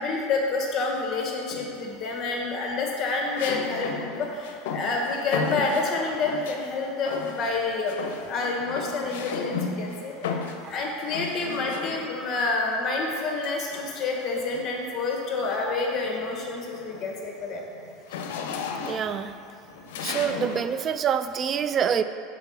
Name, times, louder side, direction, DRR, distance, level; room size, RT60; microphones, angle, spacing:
voice 1, 0.0-3.9 4.2-8.0 8.3-10.1 10.7-17.6 20.3-20.5, left 3 dB, 35° left, 0 dB, 1.4 m, -28 dB
sound 1, 1.5-2.0 3.4-6.7 7.1-7.6 7.9-12.3 13.4-14.8 15.3-15.6 16.0-20.7, left 5 dB, 80° left, 0.6 m, -35 dB
voice 2, 10.4-10.7 18.8-19.3 20.0-22.0, right 8 dB, 35° right, 11 dB, 0.3 m, -26 dB
5.9 x 4.6 x 5.7 m, 2.5 s
supercardioid pair, 115°, 0 cm